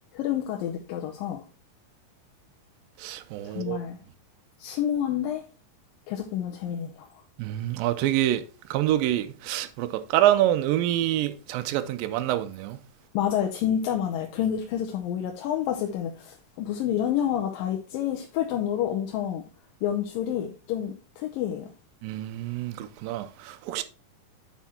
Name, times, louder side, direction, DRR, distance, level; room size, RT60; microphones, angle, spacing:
voice 1, 0.1-1.4 3.4-4.0 4.6-5.5 6.1-7.1 13.1-19.4 19.8-21.7, left 10 dB, 80° left, 2.4 m, -29 dB
voice 2, 3.0-3.8 7.4-8.4 8.7-12.8 22.0-23.8, right 13 dB, 85° right, 2.4 m, -26 dB
8.2 x 4.4 x 4.2 m
omnidirectional pair, 4.0 m